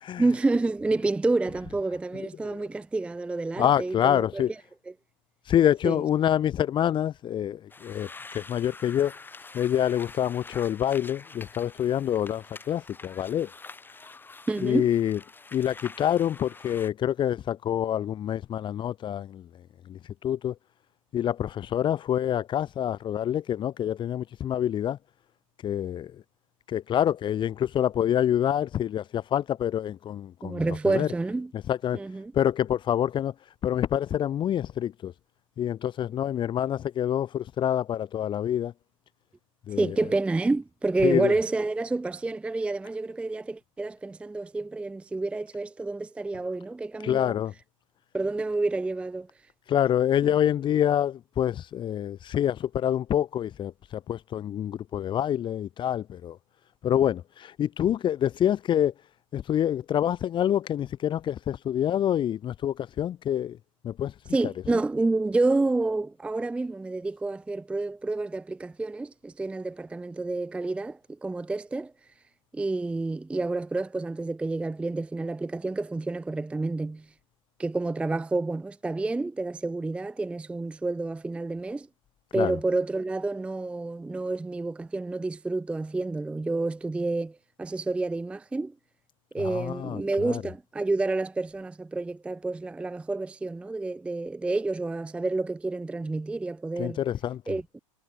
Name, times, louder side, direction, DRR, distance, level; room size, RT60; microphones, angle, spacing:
voice 1, 0.2-4.4 5.8-6.0 14.5-14.9 30.4-31.5 31.9-32.3 39.7-47.4 48.1-49.3 64.3-71.9 72.5-77.1 77.6-81.9 82.3-88.7 89.3-97.0 97.5-97.8, right 2 dB, 5° right, 0.5 m, -29 dB
voice 2, 3.6-4.5 5.5-8.1 8.3-9.1 9.5-13.5 14.6-15.2 15.5-19.5 19.9-20.5 21.1-25.0 25.6-26.1 26.7-31.1 31.7-32.0 32.3-33.3 33.6-35.1 35.6-38.7 39.7-39.9 41.0-41.3 47.0-47.5 49.7-56.4 56.8-58.9 59.3-63.6 63.8-64.1 64.4-64.5 82.3-82.6 89.4-90.4 96.8-97.4, left 10 dB, 30° left, 1.1 m, -26 dB
sound 1, 7.7-16.9, left 3 dB, 10° left, 2.9 m, -46 dB
hypercardioid pair, 95°, 17 cm